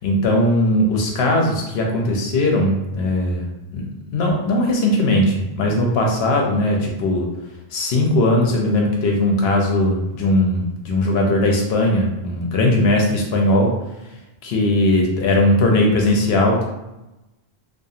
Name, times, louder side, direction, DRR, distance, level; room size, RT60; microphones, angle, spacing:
voice 1, 0.0-3.5 3.7-3.8 4.1-7.3 7.7-13.7 14.4-16.7, left 1 dB, 80° left, 0 dB, 0.8 m, -19 dB
2.7 x 2.5 x 2.4 m, 0.97 s
omnidirectional pair, 1.0 m